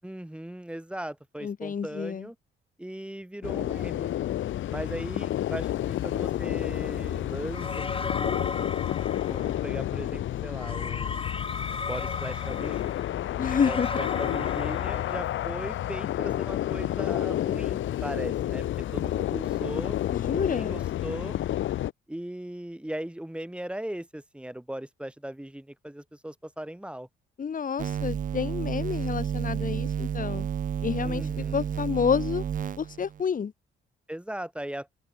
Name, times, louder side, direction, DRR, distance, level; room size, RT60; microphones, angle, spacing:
voice 1, 0.0-2.4 2.8-4.1 4.7-8.7 9.3-11.3 11.9-13.1 13.6-20.0 20.3-21.4 22.1-27.1 31.0-31.7 34.1-34.9, right 1 dB, 5° right, 4.6 m, -38 dB
voice 2, 1.4-2.3 13.4-13.9 20.1-20.8 27.4-30.5 30.8-32.4 32.8-33.5, left 6 dB, 45° left, 2.8 m, -29 dB
sound 1, 3.4-21.9, left 12 dB, 75° left, 2.4 m, -30 dB
sound 2, 7.5-9.7 10.6-15.5, left 4 dB, 25° left, 3.4 m, -36 dB
sound 3, 27.8-33.2, right 9 dB, 40° right, 0.6 m, -31 dB
open air
cardioid pair, 90°, 20 cm